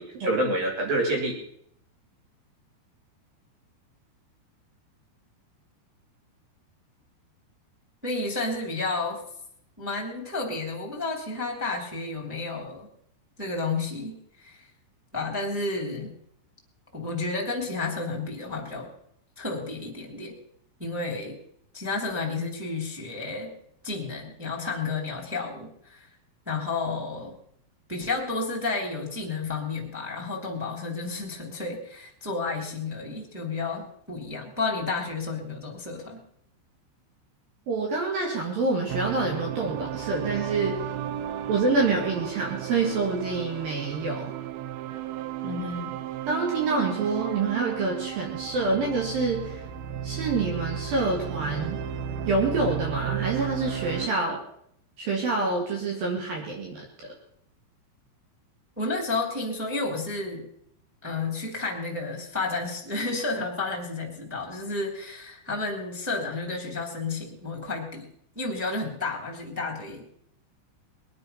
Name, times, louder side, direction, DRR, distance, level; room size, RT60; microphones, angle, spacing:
voice 1, 0.0-1.4 37.7-40.8 41.5-44.3 46.3-49.7 50.0-51.8 52.3-54.4 55.0-57.1, right 3 dB, 55° right, 0 dB, 3.5 m, -27 dB
voice 2, 8.0-9.2 9.8-12.9 13.4-14.7 15.1-16.1 16.9-18.9 19.4-20.4 20.8-21.4 21.7-23.5 23.8-26.1 26.5-27.4 27.9-36.2 45.4-46.0 58.8-60.5 61.0-68.1 68.3-70.1, left 3 dB, 5° right, 1 dB, 1.9 m, -31 dB
sound 1, 38.9-54.1, right 10 dB, 80° right, 2.2 m, -34 dB
21.5 x 9.7 x 5.7 m, 0.70 s
omnidirectional pair, 5.5 m